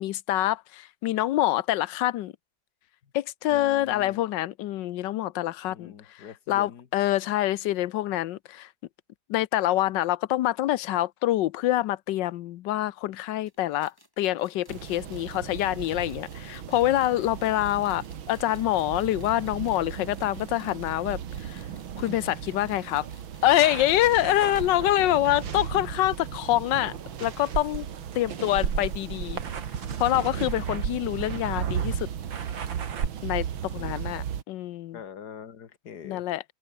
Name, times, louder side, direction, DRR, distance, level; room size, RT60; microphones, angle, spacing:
voice 1, 0.0-2.3 3.1-8.7 9.3-21.6 22.0-23.1 23.4-26.9 27.2-27.9 28.1-29.4 30.0-32.1 33.2-35.0 36.0-36.4, left 14 dB, 70° left, 1.3 m, -26 dB
voice 2, 3.5-4.2 5.7-6.9 30.7-30.8 33.8-34.0 34.9-36.2, left 7 dB, 55° left, 2.1 m, -44 dB
sound 1, 13.5-24.8 25.1-25.2 25.4-25.5 26.4-26.5, left 1 dB, 10° left, 5.6 m, -57 dB
sound 2, 14.7-34.4, right 9 dB, 85° right, 2.3 m, -36 dB
sound 3, 23.4-33.1, right 6 dB, 70° right, 2.8 m, -36 dB
open air
omnidirectional pair, 2.1 m